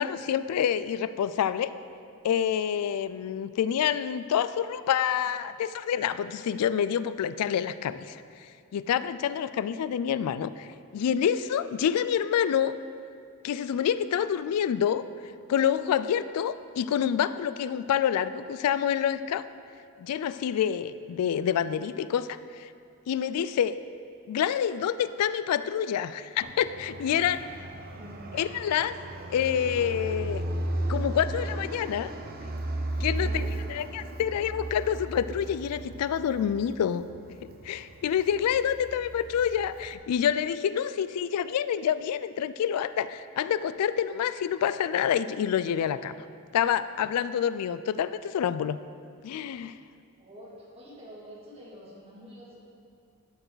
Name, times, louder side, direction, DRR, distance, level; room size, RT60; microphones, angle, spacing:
voice 1, 0.0-1.7 2.2-12.7 13.4-15.0 15.5-19.4 20.0-22.7 23.1-23.8 24.3-27.6 28.3-29.0 29.3-30.4 30.9-32.1 33.0-37.1 37.4-46.1 46.5-48.8 49.2-49.8, left 9 dB, 85° left, 15 dB, 0.3 m, -27 dB
Fixed-wing aircraft airplane, 26.4-39.9, right 1 dB, 45° right, 0.7 m, -35 dB
voice 2, 33.1-33.6 50.2-52.6, equal, 30° right, -6 dB, 2.3 m, -47 dB
12.0 x 6.8 x 4.0 m, 2.4 s
head